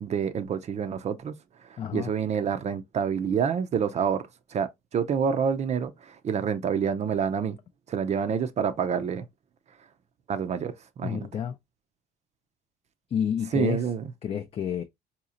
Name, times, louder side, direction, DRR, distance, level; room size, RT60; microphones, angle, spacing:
voice 1, 0.0-1.3 1.7-4.2 4.5-7.6 7.9-9.2 10.3-11.2 13.5-14.0, right 7 dB, 40° right, 0.5 m, -27 dB
voice 2, 1.8-2.1 11.0-11.6 13.1-13.9 14.2-14.8, left 8 dB, 35° left, 0.4 m, -29 dB
4.0 x 2.8 x 2.4 m
cardioid pair, 110°, 17 cm